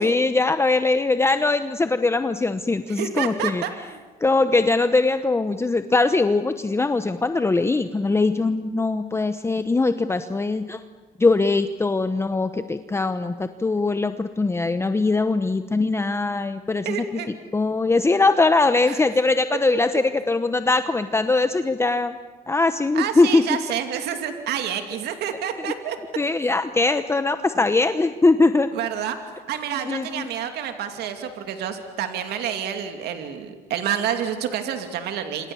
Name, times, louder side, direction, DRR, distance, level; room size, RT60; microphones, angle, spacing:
voice 1, 0.0-3.6 4.2-10.8 11.2-17.2 17.5-22.2 22.5-23.6 25.6-25.7 26.2-28.7 29.8-30.3, left 3 dB, 15° left, 10 dB, 0.9 m, -21 dB
voice 2, 2.9-4.0 16.8-17.3 18.8-19.0 22.9-26.0 28.7-29.2 29.5-35.5, right 9 dB, 75° right, 6 dB, 2.7 m, -28 dB
27.5 x 27.0 x 7.1 m, 1.4 s
cardioid pair, 110°, 17 cm